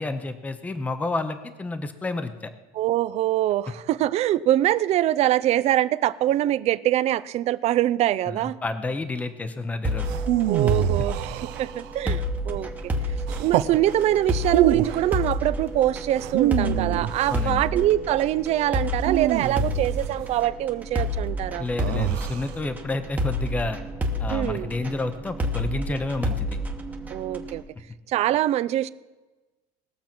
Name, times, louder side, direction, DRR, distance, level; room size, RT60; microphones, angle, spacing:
voice 1, 0.0-2.5 8.3-10.1 12.0-12.1 17.3-17.7 21.6-23.8 24.2-26.6, left 2 dB, 10° left, 9 dB, 0.6 m, -30 dB
voice 2, 2.7-8.6 10.5-11.3 11.6-12.9 13.4-21.7 24.3-24.7 27.1-27.6 28.1-28.9, right 13 dB, 40° right, 17 dB, 0.4 m, -24 dB
sound 1, 9.8-27.6, equal, 10° right, 1.0 m, -29 dB
sound 2, 10.0-12.0 13.3-13.8 14.4-15.1 16.2-17.5 19.0-20.2 21.8-22.6, right 14 dB, 80° right, 0.6 m, -25 dB
19.0 x 7.1 x 6.0 m, 1.1 s
cardioid pair, 170°, 17 cm